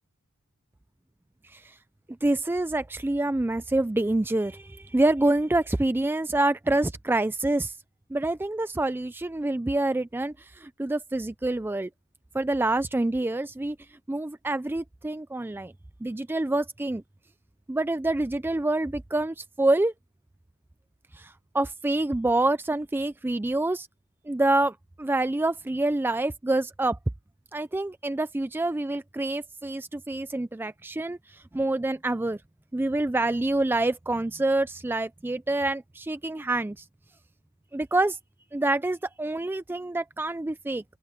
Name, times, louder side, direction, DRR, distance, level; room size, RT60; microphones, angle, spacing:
voice 1, 2.2-7.8 8.1-11.9 12.3-13.8 14.1-15.7 16.0-17.0 17.7-19.9 21.1-23.9 24.3-27.0 27.5-32.4 32.7-36.8 37.7-38.2 38.5-40.8, right 2 dB, 10° right, 0.3 m, -27 dB
open air
head